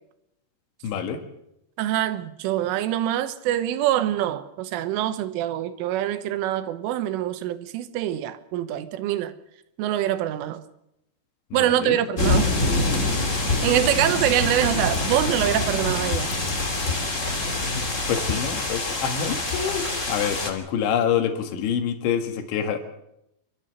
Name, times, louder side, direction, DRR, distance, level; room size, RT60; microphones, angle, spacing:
voice 1, 0.8-1.2 11.5-12.0 17.7-22.8, left 8 dB, 75° left, 4.1 m, -27 dB
voice 2, 1.8-9.3 9.8-10.6 11.5-12.5 13.6-16.3, right 12 dB, 90° right, 3.6 m, -24 dB
sound 1, 12.2-20.5, left 2 dB, 25° left, 1.7 m, -25 dB
28.5 x 13.0 x 8.1 m
omnidirectional pair, 5.6 m